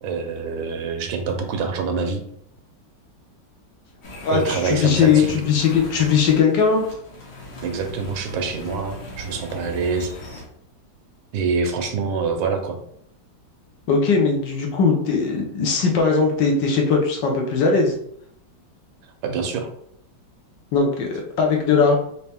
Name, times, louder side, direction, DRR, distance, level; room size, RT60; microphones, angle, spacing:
voice 1, 0.0-2.2 4.3-5.4 7.6-10.1 11.3-12.8 19.2-19.7, right 5 dB, 85° right, 5 dB, 1.6 m, -25 dB
sound 1, 4.0-10.5, equal, 90° left, 2.0 m, -38 dB
voice 2, 4.2-6.8 13.9-17.9 20.7-22.0, left 5 dB, 70° left, 1 dB, 1.4 m, -19 dB
4.4 x 2.8 x 3.4 m, 0.69 s
omnidirectional pair, 2.2 m